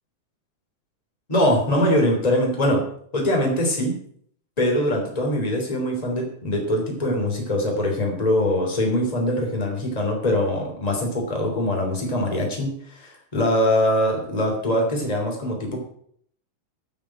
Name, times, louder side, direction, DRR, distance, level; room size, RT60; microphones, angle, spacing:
voice 1, 1.3-2.8 3.1-4.0 4.6-15.8, left 1 dB, 10° left, 0 dB, 2.2 m, -22 dB
10.5 x 6.5 x 8.8 m, 0.64 s
omnidirectional pair, 5.5 m